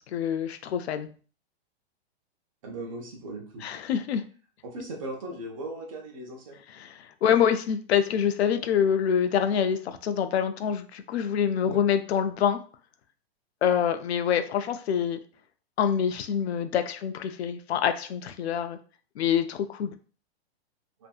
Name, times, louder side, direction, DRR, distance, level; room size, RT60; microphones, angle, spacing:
voice 1, 0.1-1.1 3.6-4.2 6.7-12.6 13.6-15.2 15.8-18.8 19.2-19.9, left 8 dB, 80° left, 9 dB, 0.5 m, -26 dB
voice 2, 2.6-3.6 4.6-6.6 11.6-11.8, right 2 dB, 35° right, 0 dB, 0.6 m, -38 dB
2.6 x 2.6 x 2.3 m, 0.39 s
hypercardioid pair, 170°, 31 cm